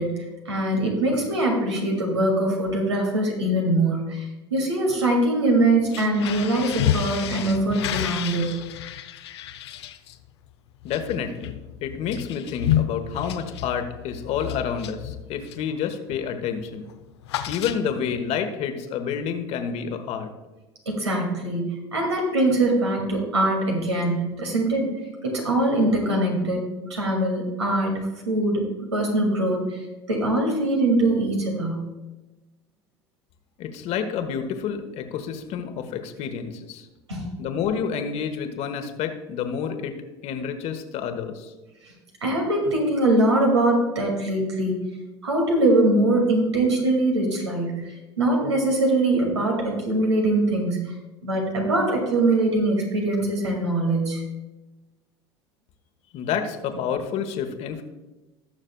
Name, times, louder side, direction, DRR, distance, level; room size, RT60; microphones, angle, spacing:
voice 1, 0.0-8.6 20.9-24.9 25.2-26.6 26.9-28.0 28.3-28.6 28.9-31.9 37.1-37.3 42.2-44.8 45.2-47.8 48.2-50.9 51.2-54.2, right 2 dB, 85° right, 0 dB, 2.2 m, -22 dB
sound 1, 5.8-15.7 16.1-16.4 16.6-18.2, left 11 dB, 70° left, 0.6 m, -30 dB
voice 2, 10.8-11.5 11.8-16.9 17.5-20.3 33.6-36.9 37.4-40.0 40.2-41.5 56.1-57.8, left 7 dB, 50° left, 7 dB, 1.2 m, -29 dB
19.0 x 6.4 x 2.3 m, 1.1 s
hypercardioid pair, 75°, 14 cm